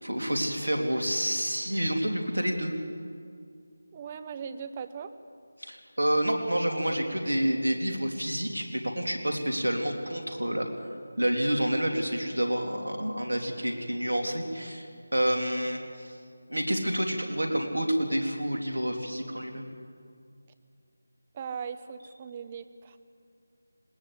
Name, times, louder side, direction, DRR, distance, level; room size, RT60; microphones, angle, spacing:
voice 1, 0.0-2.7 5.6-10.7 11.2-14.9 15.1-16.1 16.5-19.7, right 1 dB, 85° right, 3 dB, 3.2 m, -28 dB
voice 2, 3.9-5.1 21.3-23.0, right 6 dB, 25° right, 11 dB, 0.9 m, -39 dB
20.0 x 19.0 x 8.4 m, 2.2 s
figure-of-eight pair, 160°, 0 cm